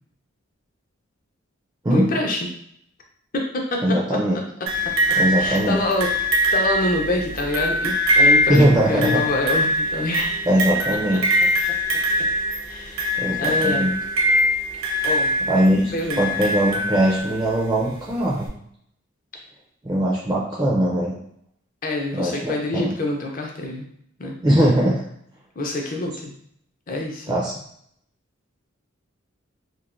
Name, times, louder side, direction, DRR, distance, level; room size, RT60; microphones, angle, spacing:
voice 1, 1.9-2.5 3.3-4.4 4.8-6.1 6.5-10.4 11.1-11.2 11.7-11.8 12.6-13.0 13.4-13.9 15.0-15.3 15.9-16.3 21.8-23.9 24.2-24.4 25.6-26.3 26.9-27.4, left 2 dB, 40° left, 1 dB, 0.5 m, -26 dB
voice 2, 3.8-4.4 5.2-5.8 8.5-9.2 10.5-11.2 13.2-13.9 15.5-18.5 19.8-21.1 22.1-22.9 24.4-25.0 27.3-27.5, right 1 dB, 15° right, -4 dB, 0.4 m, -20 dB
sound 1, 4.7-17.5 18.5-18.6, equal, 80° right, 0.7 m, -22 dB
3.0 x 2.1 x 2.5 m, 0.69 s
head